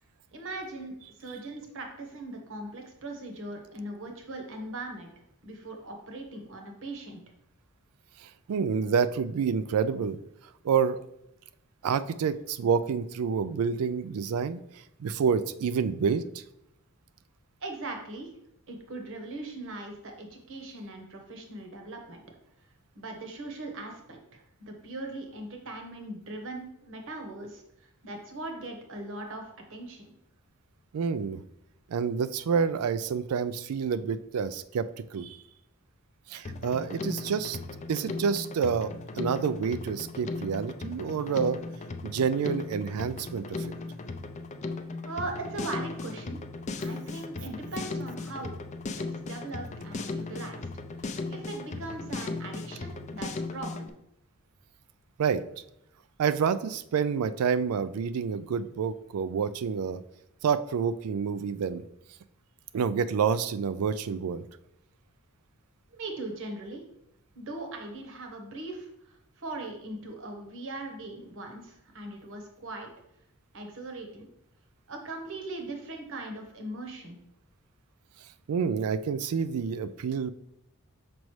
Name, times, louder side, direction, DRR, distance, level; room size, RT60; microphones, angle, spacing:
voice 1, 0.3-0.9 1.2-5.1 5.4-7.2 17.6-18.3 18.7-22.2 22.9-30.1 45.0-46.4 46.8-48.6 49.0-50.7 51.0-53.9 65.9-66.8 67.3-72.9 73.5-74.3 74.9-77.2, right 2 dB, 60° right, 3 dB, 1.1 m, -40 dB
voice 2, 8.2-10.2 10.6-11.0 11.8-14.6 15.0-16.4 30.9-31.4 31.9-35.4 36.3-37.6 37.9-41.6 42.0-43.7 55.2-55.4 56.2-60.0 60.4-61.8 62.7-64.5 78.5-80.3, right 6 dB, 90° right, 13 dB, 0.4 m, -28 dB
Drum kit, 36.4-53.9, left 3 dB, 30° left, 0.4 m, -37 dB
6.1 x 5.2 x 3.1 m, 0.79 s
head